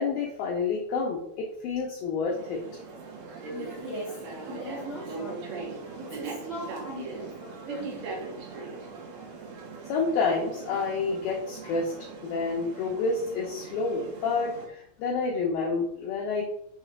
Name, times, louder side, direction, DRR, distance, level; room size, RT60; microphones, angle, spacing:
voice 1, 0.0-2.6 9.9-11.9 12.2-16.4, left 4 dB, 90° left, -1 dB, 2.0 m, -29 dB
sound 1, 2.3-14.7, right 4 dB, 75° right, 3.0 m, -40 dB
voice 2, 3.5-4.1 4.5-5.7 6.0-8.0 15.5-15.7, equal, 50° right, -8 dB, 1.4 m, -40 dB
7.0 x 3.2 x 2.3 m, 0.70 s
omnidirectional pair, 5.0 m